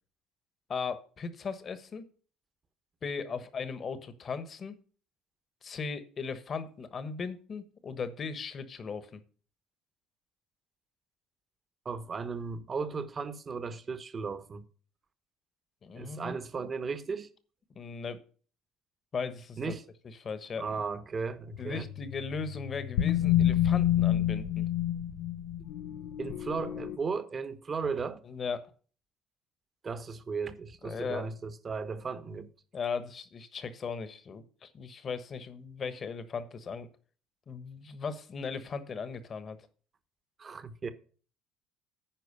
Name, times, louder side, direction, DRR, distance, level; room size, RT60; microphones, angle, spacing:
voice 1, 0.7-2.1 3.0-4.7 5.6-9.2 15.8-16.7 17.7-18.2 19.1-19.7 20.0-20.8 21.6-24.7 28.2-28.7 30.8-31.3 32.7-36.9 37.5-39.6, left 5 dB, 40° left, 1.2 m, -37 dB
voice 2, 11.8-14.7 15.9-17.3 19.6-19.8 20.6-21.8 26.2-28.2 29.8-32.5 40.4-40.9, right 5 dB, 35° right, 1.1 m, -36 dB
sound 1, 21.5-27.0, left 12 dB, 85° left, 0.6 m, -29 dB
10.0 x 4.6 x 6.7 m
supercardioid pair, 80°, 0 cm